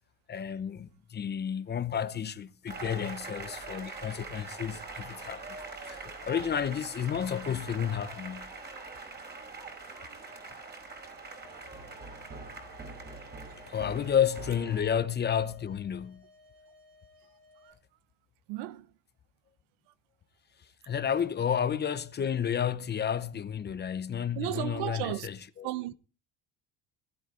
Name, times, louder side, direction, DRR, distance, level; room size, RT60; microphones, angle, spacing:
voice 1, 0.3-5.4 5.8-8.5 13.7-16.2 20.8-25.7, left 8 dB, 25° left, 0.8 m, -31 dB
sound 1, 2.7-14.8, right 3 dB, 25° right, 5.0 m, -43 dB
sound 2, 11.0-17.7, right 1 dB, 60° right, 7.0 m, -59 dB
voice 2, 18.5-18.9 24.3-25.3 25.6-25.9, right 15 dB, 90° right, 1.1 m, -34 dB
20.5 x 12.5 x 3.8 m
cardioid pair, 140°, 40 cm